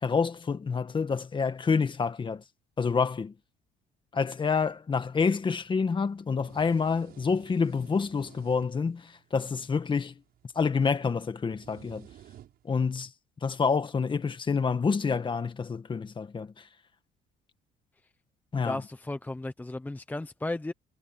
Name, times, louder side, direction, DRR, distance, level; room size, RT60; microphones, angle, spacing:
voice 1, 0.0-2.4 2.8-3.3 4.1-10.1 10.6-12.1 12.7-13.1 13.4-16.5 18.5-18.8, left 5 dB, 30° left, 1.8 m, -28 dB
sound 1, 5.4-12.9, right 12 dB, 65° right, 6.4 m, -56 dB
voice 2, 18.6-20.7, left 2 dB, 10° left, 0.9 m, -34 dB
cardioid pair, 110°, 17 cm